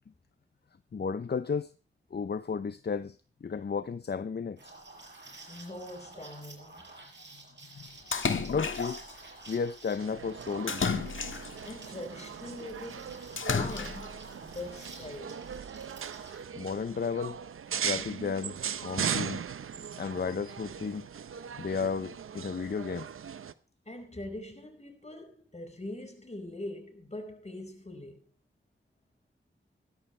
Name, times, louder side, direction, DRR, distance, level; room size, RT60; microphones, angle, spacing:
voice 1, 0.9-1.7 2.1-4.7 7.7-8.0 8.5-9.0 9.5-10.8 16.6-17.4 17.8-19.4 20.0-21.1 21.6-23.1, left 5 dB, 50° left, 0.7 m, -33 dB
Liquid, 4.6-16.4, right 2 dB, 60° right, 6.4 m, -51 dB
voice 2, 5.5-6.9 11.7-15.4 23.9-28.3, left 1 dB, 30° left, 5.1 m, -43 dB
Splash splatter, 8.1-9.1 10.7-11.7 13.4-14.2, left 5 dB, 70° left, 1.6 m, -31 dB
sound 1, 10.0-23.5, right 7 dB, 85° right, 0.7 m, -39 dB
16.5 x 13.0 x 3.3 m
cardioid pair, 40°, 21 cm